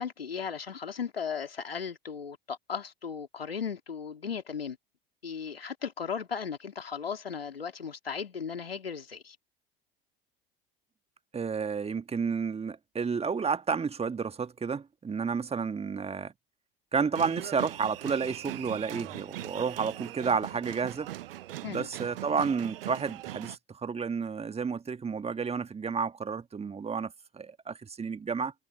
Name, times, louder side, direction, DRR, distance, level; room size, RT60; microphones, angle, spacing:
voice 1, 0.0-4.8 5.2-9.4 21.6-21.9, left 6 dB, 85° left, 2.9 m, -36 dB
voice 2, 11.3-16.3 16.9-21.1 21.6-28.5, right 5 dB, 20° right, 1.8 m, -31 dB
sound 1, 17.1-23.6, right 15 dB, 70° right, 0.6 m, -40 dB
figure-of-eight pair, 70°, 29 cm